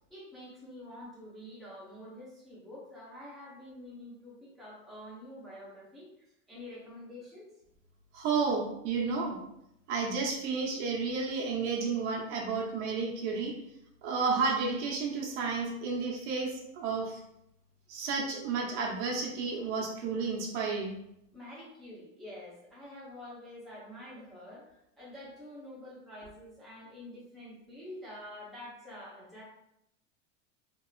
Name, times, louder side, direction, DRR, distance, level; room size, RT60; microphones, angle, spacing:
voice 1, 0.1-7.5 21.3-29.4, left 1 dB, ahead, -8 dB, 0.9 m, -47 dB
voice 2, 8.1-9.4 9.9-13.5 14.0-17.2 17.9-21.0, right 4 dB, 65° right, -2 dB, 0.9 m, -31 dB
3.0 x 2.7 x 2.4 m, 0.81 s
supercardioid pair, 135°, 38 cm